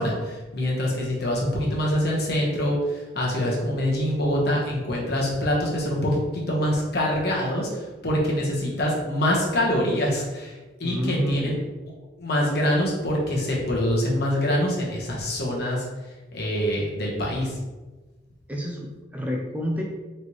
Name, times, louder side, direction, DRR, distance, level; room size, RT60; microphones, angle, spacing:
voice 1, 0.0-11.5 12.2-17.6, left 1 dB, 55° left, -3 dB, 1.1 m, -25 dB
voice 2, 10.8-11.6 18.5-19.8, equal, 10° right, -1 dB, 0.4 m, -28 dB
4.2 x 3.3 x 3.0 m, 1.2 s
head